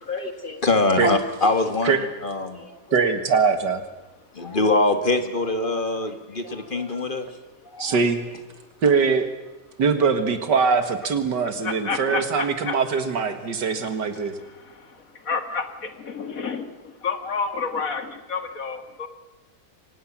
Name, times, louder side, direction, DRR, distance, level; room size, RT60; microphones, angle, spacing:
voice 1, 0.0-2.8 4.3-7.3 7.7-8.0, left 2 dB, 30° left, 8 dB, 1.8 m, -24 dB
voice 2, 2.9-3.8 7.8-8.3 8.8-9.3 9.8-14.3, right 5 dB, 85° right, 9 dB, 2.4 m, -22 dB
voice 3, 11.9-12.2 12.7-12.8 15.3-15.6 16.0-16.7 17.0-19.1, left 5 dB, 55° left, 9 dB, 2.1 m, -28 dB
24.5 x 19.0 x 7.4 m, 1.0 s
omnidirectional pair, 1.8 m